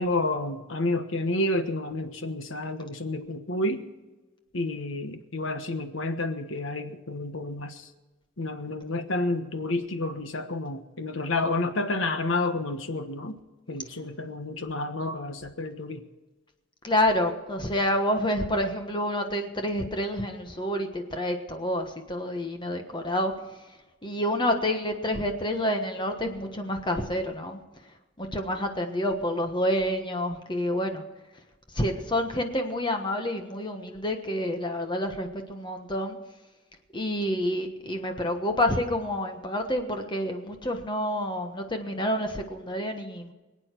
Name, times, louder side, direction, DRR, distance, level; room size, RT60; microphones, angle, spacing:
voice 1, 0.0-3.8 4.5-7.9 8.4-13.3 13.7-16.0, left 2 dB, 75° left, 8 dB, 1.3 m, -30 dB
voice 2, 16.8-23.3 24.0-27.6 28.2-31.0 31.7-36.2 36.9-43.3, left 1 dB, 25° left, 5 dB, 1.3 m, -28 dB
26.0 x 8.9 x 4.6 m, 1.2 s
head